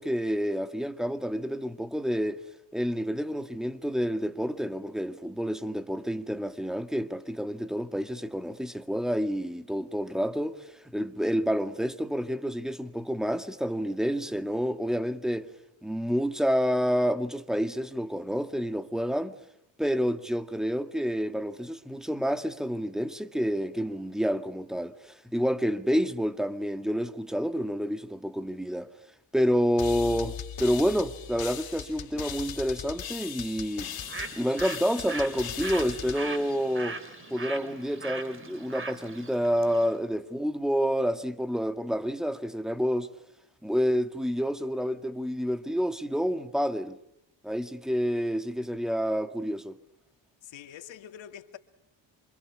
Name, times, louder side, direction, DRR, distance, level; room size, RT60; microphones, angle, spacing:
voice 1, 0.0-2.4 2.7-15.5 15.8-19.3 19.8-28.9 29.3-33.9 34.4-37.0 37.3-43.1 43.6-47.0 47.4-49.8, equal, ahead, 1.9 m, -29 dB
sound 1, 29.8-37.3, left 8 dB, 55° left, 3.1 m, -39 dB
Bird, 33.8-40.0, right 3 dB, 25° right, 3.6 m, -40 dB
voice 2, 50.4-51.6, left 10 dB, 80° left, 2.5 m, -45 dB
28.0 x 27.0 x 7.4 m
cardioid pair, 110°, 45 cm